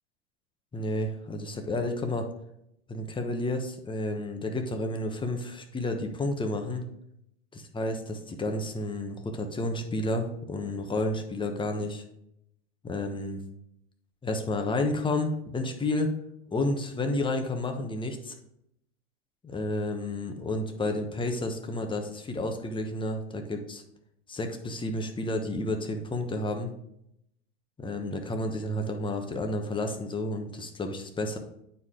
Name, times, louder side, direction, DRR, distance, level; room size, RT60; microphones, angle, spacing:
voice 1, 0.7-2.3 2.9-6.8 7.5-12.0 12.8-13.4 14.2-16.1 16.5-18.3 19.4-23.8 24.3-26.7 27.8-31.4, left 2 dB, 15° left, 4 dB, 1.2 m, -31 dB
9.5 x 4.7 x 3.8 m, 0.77 s
hypercardioid pair, 105°, 35 cm